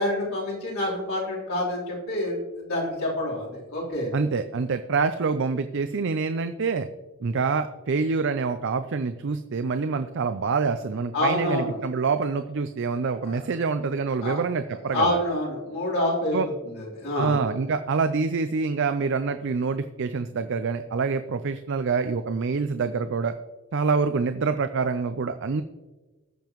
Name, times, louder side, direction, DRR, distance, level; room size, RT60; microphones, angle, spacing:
voice 1, 0.0-4.1 11.1-11.7 13.0-13.4 14.2-14.4 14.9-17.4, left 1 dB, 90° left, -5 dB, 3.8 m, -27 dB
voice 2, 4.1-6.9 7.2-15.2 16.3-16.5 17.2-23.3 23.7-25.6, right 4 dB, 60° right, 10 dB, 0.5 m, -26 dB
20.0 x 6.9 x 3.1 m, 1.2 s
head